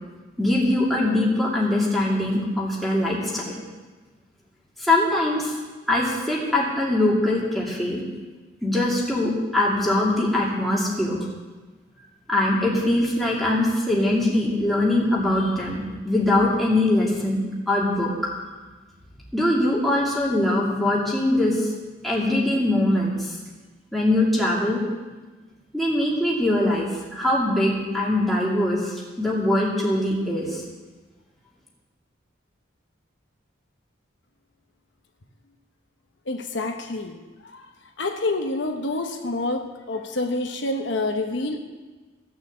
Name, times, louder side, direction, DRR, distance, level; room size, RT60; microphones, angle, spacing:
voice 1, 0.4-3.6 4.8-5.5 5.9-8.0 8.6-11.2 12.3-18.1 19.3-21.7 22.0-23.3 23.9-24.8 25.7-30.6, left 1 dB, ahead, -5 dB, 2.5 m, -22 dB
voice 2, 36.3-37.2 37.5-37.7 38.0-41.6, left 2 dB, 65° left, 4 dB, 1.0 m, -27 dB
15.0 x 6.3 x 7.9 m, 1.3 s
head